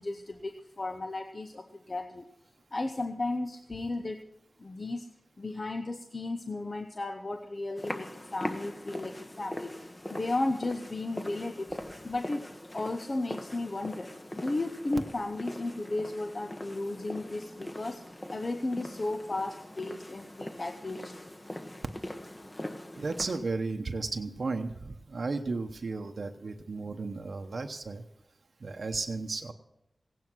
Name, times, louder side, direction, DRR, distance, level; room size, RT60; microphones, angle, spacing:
voice 1, 0.0-2.2 2.7-4.2 4.6-5.1 5.4-11.8 12.0-14.1 14.4-18.0 18.3-21.1, left 2 dB, 50° left, 7 dB, 0.9 m, -34 dB
sound 1, 7.8-23.4, left 1 dB, 30° left, 1.3 m, -42 dB
voice 2, 23.0-28.0 28.6-29.5, right 3 dB, 70° right, 5 dB, 0.9 m, -34 dB
17.0 x 9.3 x 6.1 m, 0.83 s
cardioid pair, 45°, 0 cm